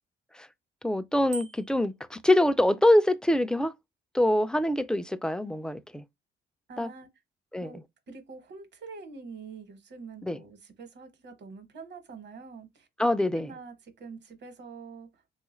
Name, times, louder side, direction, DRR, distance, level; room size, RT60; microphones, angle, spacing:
voice 1, 0.8-3.7 4.1-6.0 6.8-6.9 7.5-7.7 10.2-10.4 13.0-13.5, left 1 dB, 5° left, 0.3 m, -24 dB
Bicycle bell, 1.3-1.9, right 4 dB, 85° right, 0.9 m, -42 dB
voice 2, 6.7-7.1 7.6-7.8 8.1-12.9 13.4-15.4, right 4 dB, 60° right, 1.1 m, -45 dB
3.4 x 2.3 x 3.1 m
cardioid pair, 90°, 20 cm